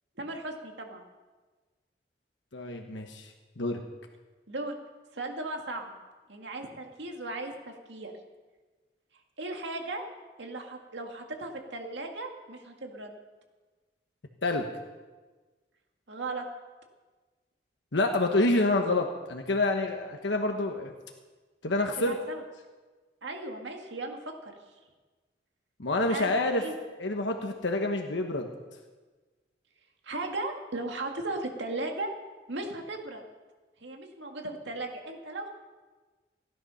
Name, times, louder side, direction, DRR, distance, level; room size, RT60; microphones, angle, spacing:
voice 1, 0.2-1.0 4.5-4.8 5.1-6.0 6.3-8.1 9.4-10.0 10.4-13.1 16.1-16.5 22.0-22.4 23.2-24.3 26.1-26.3 26.6-26.7 30.0-32.1 32.5-33.2 33.8-35.5, right 2 dB, 85° right, 3 dB, 2.0 m, -36 dB
voice 2, 2.5-3.3 3.6-3.8 14.4-14.6 17.9-20.9 21.6-22.2 25.8-28.5, left 2 dB, 85° left, 3 dB, 1.2 m, -27 dB
16.5 x 11.0 x 5.7 m, 1.3 s
head